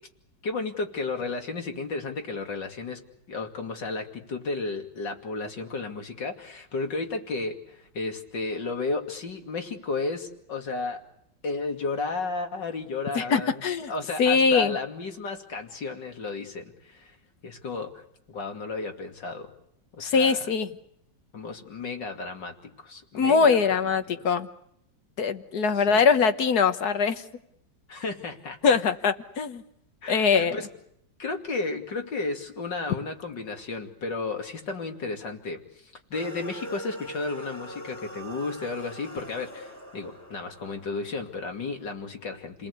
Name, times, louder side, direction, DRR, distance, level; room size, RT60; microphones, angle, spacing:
voice 1, 0.4-3.0 3.3-11.0 11.4-17.2 17.4-18.0 18.3-19.5 19.9-20.4 21.3-24.3 25.7-26.0 27.9-28.8 30.0-30.7 31.2-42.7, left 3 dB, 75° left, 4 dB, 3.3 m, -33 dB
voice 2, 13.1-13.9 14.2-14.8 20.0-20.7 23.1-24.5 25.2-27.2 28.6-29.6 30.1-30.5, left 5 dB, 60° left, 10 dB, 1.8 m, -22 dB
sound 1, 36.1-41.6, right 1 dB, 10° left, 1.8 m, -42 dB
29.5 x 20.0 x 8.4 m, 0.75 s
omnidirectional pair, 1.9 m